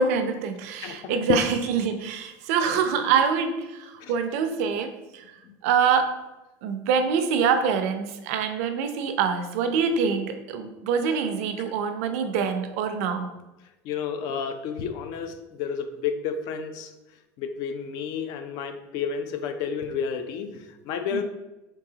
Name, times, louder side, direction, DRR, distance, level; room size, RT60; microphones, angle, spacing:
voice 1, 0.0-5.2 5.6-6.1 6.6-13.3 21.1-21.2, right 6 dB, 75° right, 7 dB, 0.5 m, -25 dB
voice 2, 0.8-1.4 4.0-4.1 5.4-5.5 13.8-16.9 17.4-21.2, left 7 dB, 55° left, 9 dB, 0.5 m, -31 dB
4.7 x 3.7 x 2.8 m, 1.0 s
cardioid pair, 155°, 8 cm